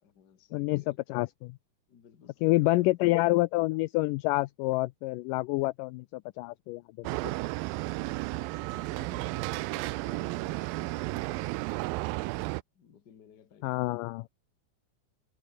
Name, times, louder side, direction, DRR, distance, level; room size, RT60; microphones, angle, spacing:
voice 1, 0.0-1.0 1.9-3.1 7.9-12.1 12.7-14.0, left 8 dB, 40° left, 1.6 m, -56 dB
voice 2, 0.5-0.8 1.1-1.6 2.4-7.1 13.6-14.3, left 21 dB, 85° left, 1.9 m, -28 dB
sound 1, 7.0-12.6, right 21 dB, 80° right, 2.4 m, -33 dB
omnidirectional pair, 4.2 m